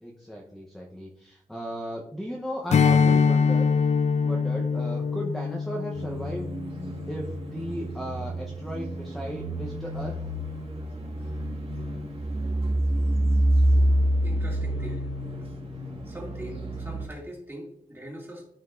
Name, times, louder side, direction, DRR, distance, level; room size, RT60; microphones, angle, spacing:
voice 1, 0.0-3.7 4.2-6.5 7.1-10.2, equal, ahead, -1 dB, 0.9 m, -36 dB
Strum, 2.7-7.5, left 5 dB, 55° left, 0.5 m, -24 dB
sound 1, 5.9-17.0, right 1 dB, 40° right, 1.6 m, -28 dB
voice 2, 14.2-15.1 15.4-15.6 16.1-18.5, equal, 15° right, -2 dB, 2.3 m, -42 dB
13.0 x 5.2 x 2.6 m, 0.76 s
wide cardioid pair, 145°, 14 cm